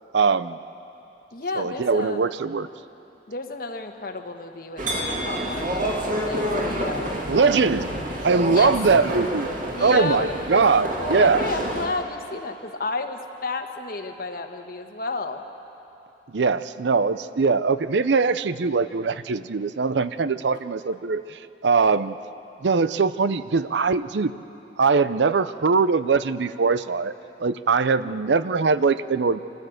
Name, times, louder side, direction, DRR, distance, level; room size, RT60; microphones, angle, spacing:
voice 1, 0.1-0.6 1.6-2.7 7.3-7.9 8.2-9.5 9.8-11.4 16.3-22.2 22.6-24.3 24.8-27.1 27.4-29.4, right 4 dB, 85° right, 14 dB, 0.6 m, -21 dB
voice 2, 1.3-2.3 3.3-7.2 8.5-8.8 9.7-15.4 21.8-21.9 28.0-28.2, left 3 dB, 55° left, 5 dB, 1.3 m, -32 dB
sound 1, 4.8-11.9, equal, 50° right, 2.2 m, -28 dB
26.0 x 14.5 x 7.9 m, 2.9 s
head